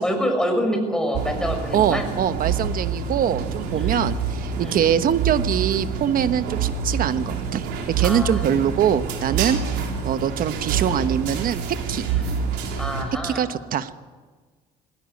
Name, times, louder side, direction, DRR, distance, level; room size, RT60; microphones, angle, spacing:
voice 1, 0.0-2.1 3.7-4.0 4.6-4.8 8.0-8.5 9.5-9.9 12.1-12.4 12.8-13.5, equal, 5° left, 4 dB, 6.0 m, -27 dB
sound 1, 1.1-13.0, right 6 dB, 85° right, 4.0 m, -27 dB
voice 2, 1.7-7.7 8.0-11.6 11.9-12.1 13.2-14.0, right 9 dB, 55° right, 11 dB, 1.2 m, -23 dB
21.0 x 17.0 x 9.3 m, 1.4 s
cardioid pair, 110°, 17 cm